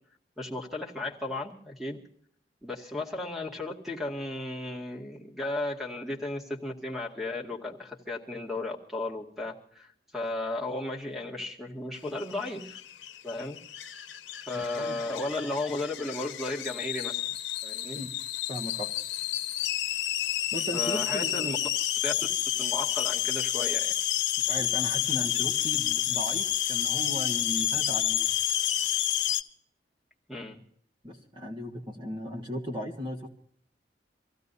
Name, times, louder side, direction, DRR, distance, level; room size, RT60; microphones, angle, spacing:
voice 1, 0.4-2.0 2.6-12.8 13.2-13.6 14.4-17.3 17.6-18.0 20.7-21.6 22.0-22.1 22.6-24.0 30.3-30.6, left 2 dB, ahead, 1 dB, 2.1 m, -34 dB
sound 1, 12.1-29.4, left 12 dB, 85° left, 1.1 m, -30 dB
voice 2, 14.5-15.0 17.9-18.1 18.5-18.9 20.5-21.6 24.4-28.3 31.0-33.3, equal, 25° right, -1 dB, 1.5 m, -37 dB
26.0 x 16.0 x 2.7 m, 0.64 s
head